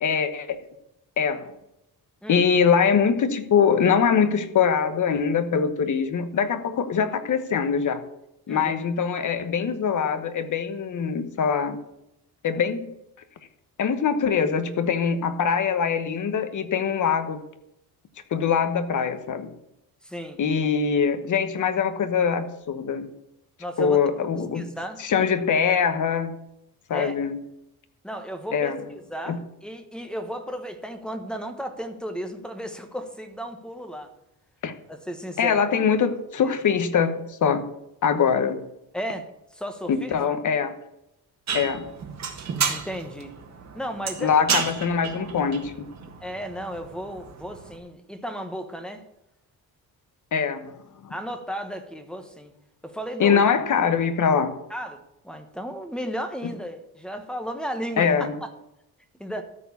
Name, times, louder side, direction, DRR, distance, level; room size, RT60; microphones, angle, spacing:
voice 1, 0.0-0.6 1.2-1.5 2.3-8.0 8.5-11.8 12.4-12.9 13.8-17.4 18.3-19.5 20.4-23.1 23.8-24.7 25.0-26.4 26.9-27.4 28.5-28.8 29.3-29.4 34.6-34.7 35.4-37.7 38.0-38.6 39.9-40.8 41.5-41.9 44.2-45.9 50.3-50.7 51.0-51.1 53.2-54.6 58.0-58.4, left 6 dB, 50° left, 9 dB, 1.2 m, -23 dB
voice 2, 20.0-20.4 23.6-24.0 24.5-25.0 26.9-27.2 28.0-34.1 34.9-35.6 38.9-40.1 42.7-43.3 43.7-44.4 46.2-49.0 51.1-52.5 52.8-53.4 54.7-58.5 59.2-59.4, equal, ahead, 6 dB, 1.2 m, -34 dB
sound 1, 41.5-47.8, right 6 dB, 45° right, 1.6 m, -32 dB
13.5 x 4.7 x 8.4 m, 0.86 s
wide cardioid pair, 150°, 38 cm